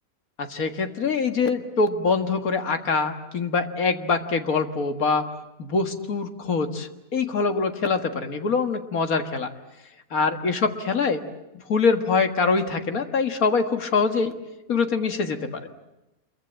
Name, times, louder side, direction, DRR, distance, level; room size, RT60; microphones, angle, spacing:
voice 1, 0.4-5.2 5.6-9.5 10.1-11.2 11.5-14.3 14.7-15.6, left 4 dB, 75° left, 7 dB, 2.2 m, -24 dB
27.0 x 23.0 x 8.7 m, 0.95 s
omnidirectional pair, 1.5 m